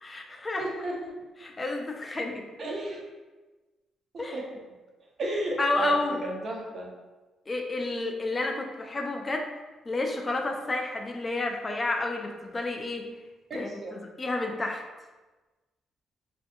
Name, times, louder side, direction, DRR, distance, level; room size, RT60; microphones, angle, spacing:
voice 1, 0.0-0.6 1.4-2.5 4.2-4.4 5.6-6.2 7.5-9.5 9.9-13.1 13.5-14.8, left 2 dB, 25° left, 2 dB, 0.3 m, -30 dB
voice 2, 0.6-1.1 2.6-3.0 4.1-4.5 5.2-6.0 6.2-6.9 13.5-14.0, right 2 dB, 50° right, -1 dB, 0.6 m, -33 dB
2.5 x 2.4 x 2.5 m, 1.2 s
cardioid pair, 90°, 0 cm